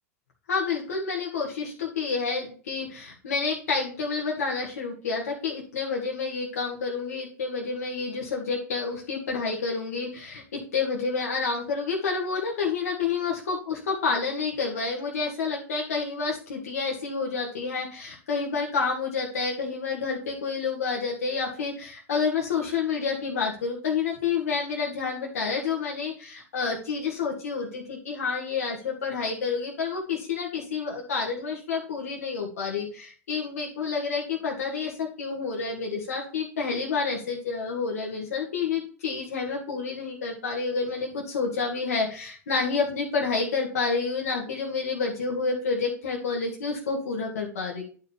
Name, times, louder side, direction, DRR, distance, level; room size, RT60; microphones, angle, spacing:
voice 1, 0.5-47.8, left 5 dB, 80° left, -2 dB, 1.9 m, -29 dB
11.0 x 4.7 x 3.5 m, 0.42 s
hypercardioid pair, 100°, 8 cm